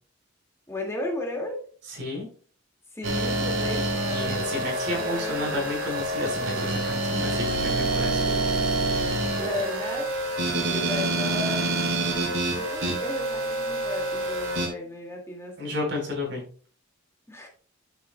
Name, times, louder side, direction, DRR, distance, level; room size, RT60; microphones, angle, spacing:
voice 1, 0.7-1.7 2.9-5.7 8.2-8.7 9.4-10.1 10.4-11.7 12.5-15.5 17.3-17.5, left 1 dB, 15° left, 0 dB, 2.2 m, -35 dB
voice 2, 1.9-2.3 4.1-8.2 15.6-16.4, left 1 dB, 60° right, 0 dB, 4.2 m, -32 dB
sound 1, 3.0-14.7, right 2 dB, 80° right, 2.7 m, -27 dB
11.5 x 7.2 x 2.3 m, 0.41 s
head